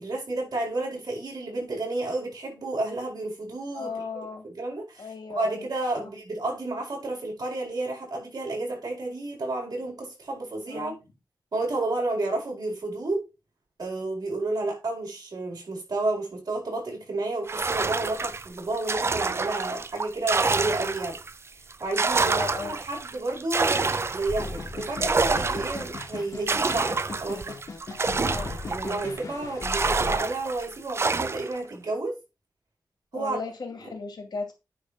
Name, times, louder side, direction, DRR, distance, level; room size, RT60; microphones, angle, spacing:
voice 1, 0.0-3.9 4.6-10.9 11.5-13.2 13.8-21.2 21.8-27.5 28.7-32.2 33.1-33.4, right 2 dB, 60° right, 4.9 m, -31 dB
voice 2, 3.7-4.4 5.0-5.7 10.7-11.0 22.2-22.8 28.2-28.5 33.1-34.5, left 4 dB, 75° left, 2.2 m, -36 dB
sound 1, 17.5-21.3 21.7-29.2 29.6-31.6, right 4 dB, 35° right, 0.5 m, -27 dB
sound 2, 24.3-30.2, left 3 dB, 50° left, 1.4 m, -37 dB
9.5 x 3.4 x 5.8 m
wide cardioid pair, 145°, 7 cm